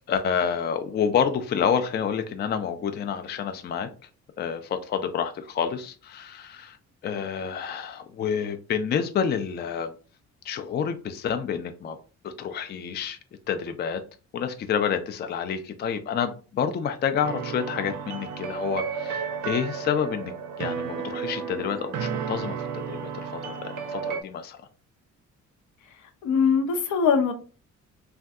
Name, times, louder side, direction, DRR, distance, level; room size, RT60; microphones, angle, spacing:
voice 1, 0.1-3.9 4.4-6.8 7.0-9.9 10.4-12.0 12.2-13.2 13.5-14.0 14.3-24.6, left 7 dB, 35° left, 0.4 m, -28 dB
sound 1, 17.2-24.2, right 6 dB, 80° right, 0.5 m, -32 dB
voice 2, 26.2-27.3, left 6 dB, 75° left, 0.7 m, -21 dB
2.5 x 2.2 x 3.5 m
cardioid pair, 90°, 30 cm